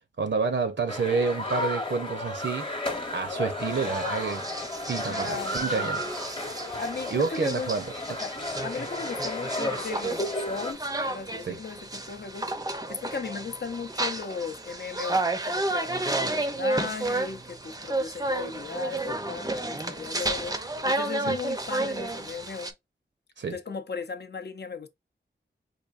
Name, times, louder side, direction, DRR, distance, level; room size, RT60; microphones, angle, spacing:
voice 1, 0.2-2.7 3.1-4.4 4.9-6.0 7.1-8.2 11.4-11.6 23.4-23.6, right 4 dB, 65° right, 0.6 m, -29 dB
sound 1, 0.9-10.7, left 1 dB, 25° left, 0.9 m, -33 dB
sound 2, 3.6-22.7, right 2 dB, 20° right, 0.5 m, -32 dB
voice 2, 5.1-6.1 6.8-7.7 8.2-8.3 8.6-12.5 12.9-22.7 23.5-24.9, left 5 dB, 60° left, 0.5 m, -36 dB
4.8 x 2.6 x 2.4 m
wide cardioid pair, 80°, 20 cm